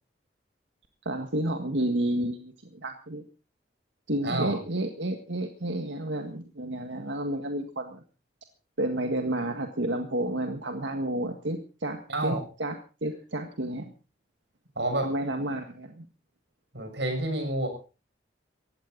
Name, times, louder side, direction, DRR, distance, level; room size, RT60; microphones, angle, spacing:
voice 1, 1.1-3.2 4.1-8.0 8.8-12.8 13.0-13.9 15.0-16.1, right 1 dB, 90° right, 5 dB, 1.7 m, -31 dB
voice 2, 4.2-4.5 12.1-12.4 14.7-15.1 16.7-17.7, right 1 dB, 70° right, 5 dB, 6.8 m, -28 dB
19.0 x 15.5 x 4.0 m, 0.35 s
head